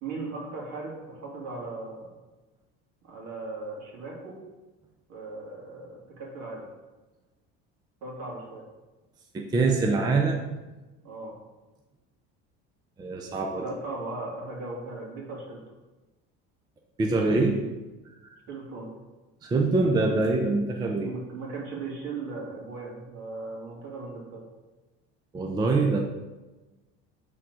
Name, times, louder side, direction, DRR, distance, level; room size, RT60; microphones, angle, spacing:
voice 1, 0.0-2.1 3.0-4.4 5.1-6.6 8.0-8.6 11.0-11.3 13.6-15.6 18.5-18.9 21.0-24.5, right 3 dB, 60° right, -3 dB, 2.2 m, -37 dB
voice 2, 9.3-10.6 13.0-13.7 17.0-17.6 18.2-18.4 19.4-21.1 25.3-26.0, right 3 dB, 15° right, 2 dB, 0.4 m, -24 dB
5.8 x 3.7 x 6.1 m, 1.2 s
cardioid pair, 155°, 30 cm